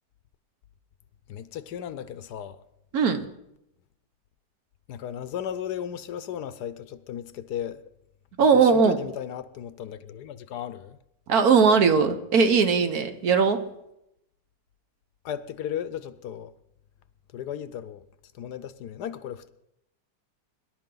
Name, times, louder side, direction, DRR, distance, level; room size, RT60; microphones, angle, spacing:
voice 1, 1.3-2.6 4.9-7.8 8.5-11.0 15.2-16.5 17.3-18.0 18.3-19.5, left 9 dB, 70° left, 1.2 m, -35 dB
voice 2, 2.9-3.3 8.4-9.0 11.3-13.6, right 5 dB, 60° right, 1.4 m, -19 dB
23.5 x 11.5 x 3.9 m
omnidirectional pair, 1.9 m